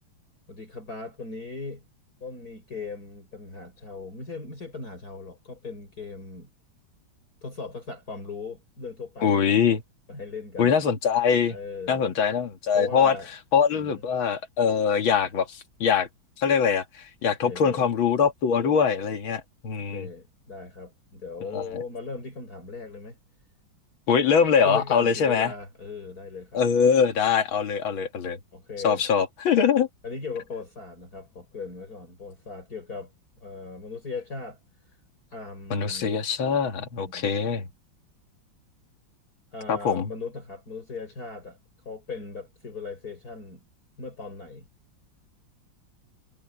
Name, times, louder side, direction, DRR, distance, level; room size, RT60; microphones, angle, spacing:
voice 1, 0.5-1.8 2.2-6.5 7.4-9.5 10.1-10.8 11.5-12.0 12.7-13.3 13.7-14.0 17.5-17.9 19.8-23.2 24.6-26.6 28.5-29.0 30.0-33.1 33.4-34.6 34.9-35.0 35.3-36.3 37.0-37.3 39.5-41.6 41.8-43.6 44.0-44.7, left 4 dB, 45° left, 6.3 m, -38 dB
voice 2, 9.2-9.8 10.6-11.6 11.9-13.2 13.5-16.1 16.4-16.8 17.2-20.1 21.5-21.6 24.1-25.5 26.5-28.4 28.8-29.9 35.7-37.7 39.7-40.1, left 6 dB, 80° left, 2.6 m, -23 dB
omnidirectional pair, 2.2 m